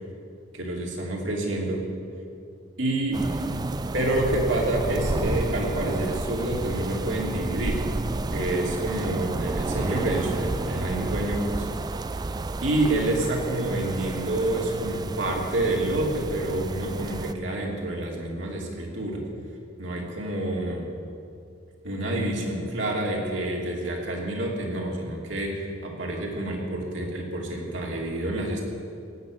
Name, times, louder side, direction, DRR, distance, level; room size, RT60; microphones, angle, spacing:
voice 1, 0.5-1.9 2.8-3.4 3.9-7.9 8.3-11.7 12.6-19.2 19.8-20.9 21.8-28.6, right 1 dB, 70° right, -2 dB, 2.9 m, -28 dB
sound 1, 3.1-17.3, right 2 dB, 20° right, 0.3 m, -31 dB
17.0 x 6.8 x 9.4 m, 2.4 s
head